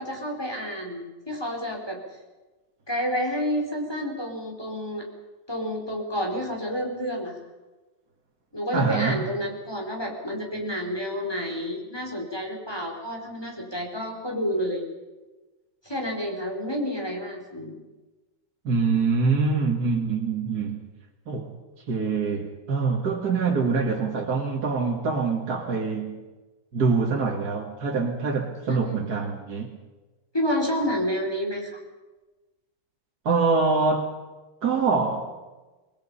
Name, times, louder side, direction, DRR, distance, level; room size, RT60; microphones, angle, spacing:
voice 1, 0.0-2.0 2.9-5.0 5.5-7.4 8.5-14.8 15.8-17.7 28.7-29.0 30.3-31.8, equal, 10° left, 4.7 m, -29 dB
voice 2, 8.7-9.2 18.6-20.8 21.3-21.5 21.9-26.2 26.7-29.7 33.2-34.1 34.6-35.3, right 4 dB, 50° right, 2.6 m, -24 dB
26.5 x 21.5 x 5.7 m
omnidirectional pair, 2.2 m